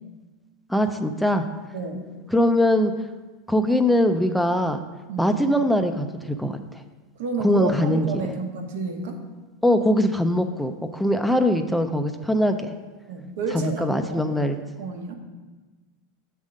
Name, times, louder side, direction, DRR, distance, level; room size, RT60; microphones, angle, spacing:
voice 1, 0.7-1.4 2.3-2.9 3.5-4.8 5.2-6.6 7.4-8.1 9.6-12.6 13.5-14.6, left 1 dB, ahead, 7 dB, 0.3 m, -21 dB
voice 2, 1.7-2.1 5.1-5.3 7.2-9.2 13.1-14.4 14.8-15.2, right 4 dB, 75° right, 4 dB, 1.1 m, -31 dB
7.4 x 3.6 x 6.3 m, 1.3 s
supercardioid pair, 155°, 0 cm